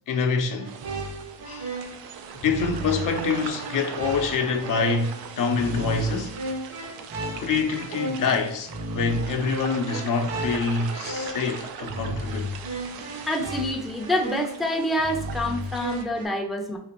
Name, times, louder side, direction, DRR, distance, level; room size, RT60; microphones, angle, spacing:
voice 1, 0.1-0.7 1.4-1.7 2.4-6.4 7.2-12.5, left 4 dB, 65° left, 0.7 m, -26 dB
sound 1, 0.6-16.3, right 1 dB, 70° right, 1.4 m, -34 dB
sound 2, 0.6-16.0, right 7 dB, 85° right, 0.5 m, -40 dB
voice 2, 13.3-16.8, left 1 dB, ahead, 0.5 m, -27 dB
3.4 x 3.2 x 2.9 m
cardioid pair, 110°, 35 cm